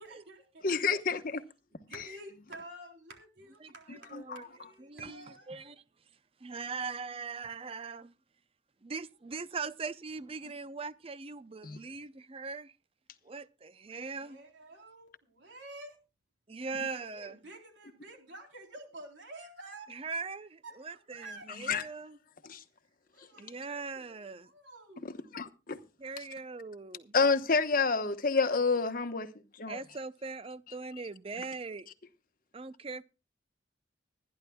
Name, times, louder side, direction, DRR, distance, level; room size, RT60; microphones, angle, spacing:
voice 1, 0.0-0.7 1.7-5.7 12.1-12.2 13.8-16.0 16.7-19.9 20.6-21.5 23.1-25.4, right 1 dB, 70° right, 3.6 m, -50 dB
voice 2, 0.6-1.4 4.1-4.2 11.6-11.8 21.7-21.8 22.4-22.6 25.3-25.8 27.1-29.3 29.6-29.8, left 4 dB, 50° left, 1.0 m, -28 dB
voice 3, 3.6-4.4 4.8-5.8 6.4-8.1 8.8-12.7 13.2-14.4 16.5-17.4 19.9-22.2 23.4-24.5 26.0-27.1 29.7-31.9 32.5-33.0, right 4 dB, 30° right, 0.6 m, -41 dB
25.0 x 10.5 x 2.3 m
head